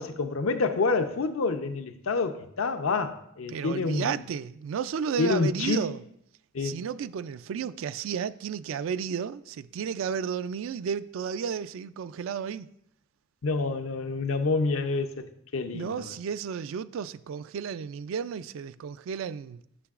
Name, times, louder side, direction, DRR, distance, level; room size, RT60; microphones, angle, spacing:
voice 1, 0.0-4.1 5.2-5.8 6.5-6.8 13.4-15.3 15.5-16.1, left 4 dB, 90° left, 0.6 m, -28 dB
voice 2, 3.5-6.0 6.6-12.7 15.7-19.6, right 7 dB, 70° right, 0.3 m, -33 dB
9.8 x 5.9 x 2.4 m
head